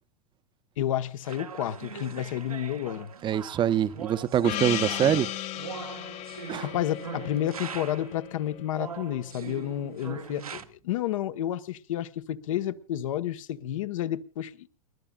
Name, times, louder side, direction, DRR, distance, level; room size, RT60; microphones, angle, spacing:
voice 1, 0.8-3.1 5.0-5.2 6.6-14.7, left 12 dB, 65° left, 1.2 m, -31 dB
sound 1, 1.2-8.2 8.7-10.6, right 6 dB, 90° right, 1.4 m, -41 dB
voice 2, 3.2-5.3 6.5-6.7, right 10 dB, 25° right, 0.8 m, -24 dB
Gong, 4.4-9.2, left 12 dB, 40° left, 1.0 m, -36 dB
29.0 x 12.5 x 2.4 m
hypercardioid pair, 105°, 18 cm